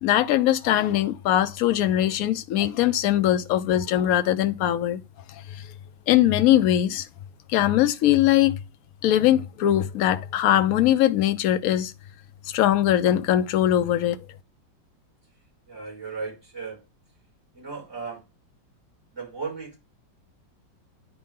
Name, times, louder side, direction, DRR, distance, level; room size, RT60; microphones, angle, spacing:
voice 1, 0.0-5.0 5.3-5.6 6.1-7.1 7.5-8.6 9.0-11.9 12.5-14.2, left 12 dB, 75° left, 0.8 m, -21 dB
voice 2, 15.7-16.8 17.5-18.2 19.1-19.8, right 5 dB, 10° right, 5.3 m, -35 dB
9.4 x 4.7 x 3.6 m
omnidirectional pair, 2.1 m